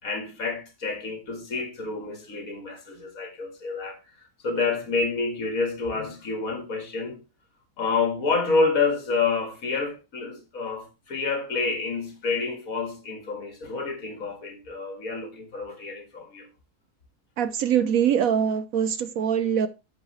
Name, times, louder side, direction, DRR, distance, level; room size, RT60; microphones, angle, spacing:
voice 1, 0.0-4.0 4.4-7.2 7.8-16.5, left 4 dB, 65° left, 2.4 m, -28 dB
voice 2, 17.4-19.7, right 8 dB, 70° right, 1.1 m, -23 dB
11.5 x 7.4 x 3.1 m
omnidirectional pair, 1.6 m